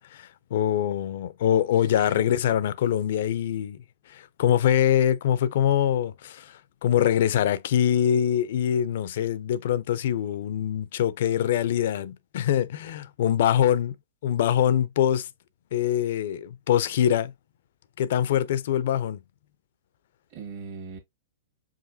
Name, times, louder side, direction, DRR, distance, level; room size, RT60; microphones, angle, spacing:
voice 1, 0.0-3.8 4.1-13.9 14.2-15.3 15.7-17.3 18.0-19.2, left 10 dB, 60° left, 0.5 m, -24 dB
voice 2, 1.7-2.6 20.3-21.0, right 5 dB, 50° right, 1.5 m, -42 dB
4.9 x 2.9 x 2.7 m
hypercardioid pair, 120°, 0 cm